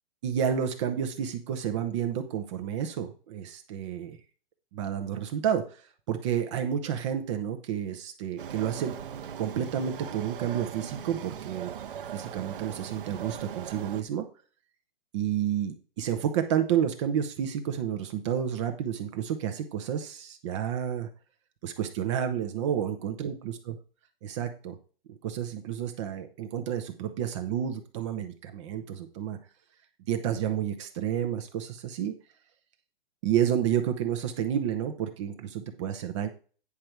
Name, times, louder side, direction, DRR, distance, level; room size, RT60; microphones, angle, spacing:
voice 1, 0.2-4.2 4.7-8.9 9.4-11.7 12.1-14.3 15.1-21.1 21.6-23.7 24.2-24.8 25.1-29.4 30.1-32.1 33.2-36.3, right 9 dB, 30° right, 7 dB, 0.9 m, -30 dB
sound 1, 8.4-14.0, right 8 dB, 65° right, 1.1 m, -39 dB
9.6 x 5.2 x 4.6 m, 0.38 s
hypercardioid pair, 155°, 29 cm